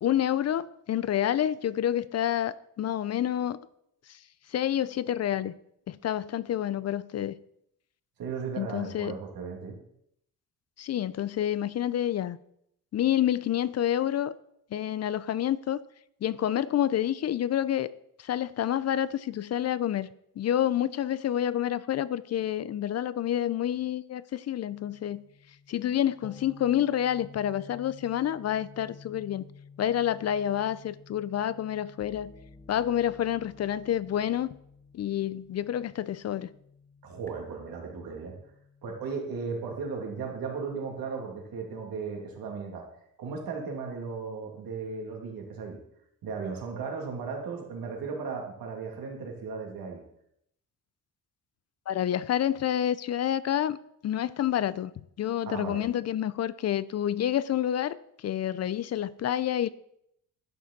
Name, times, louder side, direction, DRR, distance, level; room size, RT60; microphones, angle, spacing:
voice 1, 0.0-3.6 4.1-4.2 4.5-5.5 5.9-7.4 8.6-9.2 10.8-12.4 12.9-14.3 14.7-15.8 16.2-17.9 18.2-20.1 20.4-25.2 25.7-29.4 29.8-32.3 32.7-34.5 34.9-36.5 51.9-53.8 54.0-54.9 55.2-59.7, left 11 dB, 45° left, 0.4 m, -28 dB
voice 2, 8.2-9.8 37.0-38.4 38.8-42.8 43.2-45.8 46.2-50.0 55.5-55.8, right 5 dB, 75° right, 2.8 m, -36 dB
sound 1, 24.7-39.8, left 4 dB, 5° left, 0.9 m, -53 dB
11.5 x 7.3 x 4.1 m
cardioid pair, 105°, 36 cm